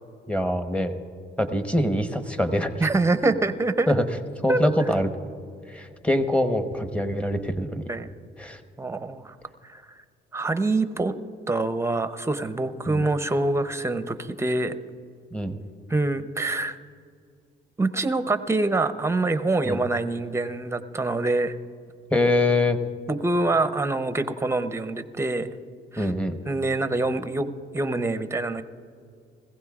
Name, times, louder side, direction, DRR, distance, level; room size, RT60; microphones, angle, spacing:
voice 1, 0.3-1.0 1.4-2.9 3.9-4.0 4.4-5.1 5.7-7.9 8.4-8.6 12.9-13.0 15.3-15.6 19.6-19.8 22.1-22.8 26.0-26.4, left 1 dB, 5° left, 8 dB, 1.0 m, -24 dB
voice 2, 2.8-3.9 4.5-4.6 7.9-8.1 8.8-9.3 9.6-10.0 10.3-11.2 11.5-14.7 15.9-16.8 17.8-21.6 23.1-25.5 25.9-26.1 26.5-28.6, right 2 dB, 15° right, 10 dB, 0.6 m, -25 dB
21.5 x 15.5 x 2.4 m, 2.3 s
cardioid pair, 90°, 20 cm